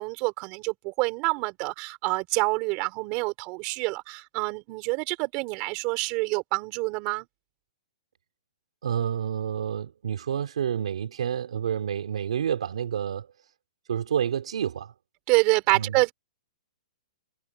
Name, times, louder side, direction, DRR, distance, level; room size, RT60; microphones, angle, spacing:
voice 1, 0.0-7.3 15.3-16.1, right 26 dB, 30° right, 4.3 m, -27 dB
voice 2, 8.8-13.3 13.9-14.9 15.7-16.0, right 8 dB, 75° right, 4.0 m, -29 dB
hypercardioid pair, 160°, 3 cm